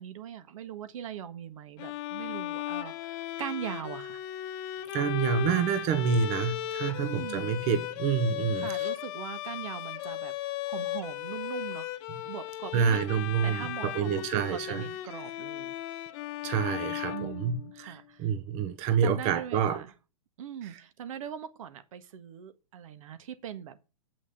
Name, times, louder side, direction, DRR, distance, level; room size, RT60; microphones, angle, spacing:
voice 1, 0.0-4.2 7.0-7.5 8.5-10.3 10.7-11.9 12.3-15.7 17.1-18.3 19.0-19.9 20.4-23.9, right 9 dB, 70° right, 1.6 m, -41 dB
Bowed string instrument, 1.8-17.9, left 13 dB, 45° left, 1.1 m, -36 dB
voice 2, 4.9-8.9 12.7-14.8 16.4-19.8 20.6-20.7, right 7 dB, 40° right, 0.9 m, -28 dB
8.3 x 6.1 x 7.0 m
hypercardioid pair, 130°, 18 cm